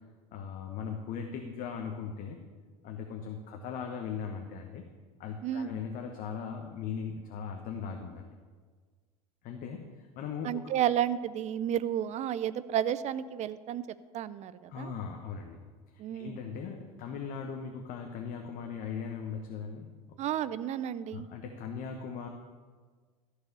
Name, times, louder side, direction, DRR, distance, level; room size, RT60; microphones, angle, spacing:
voice 1, 0.3-2.4 2.8-4.8 5.2-8.3 9.4-10.7 14.7-15.6 15.9-20.2 21.1-22.3, left 6 dB, 50° left, 4 dB, 1.0 m, -39 dB
voice 2, 5.4-5.8 10.4-13.8 14.1-14.9 16.0-16.5 20.2-21.3, right 10 dB, 40° right, 16 dB, 0.5 m, -32 dB
14.0 x 4.9 x 6.8 m, 1.6 s
hypercardioid pair, 75°, 19 cm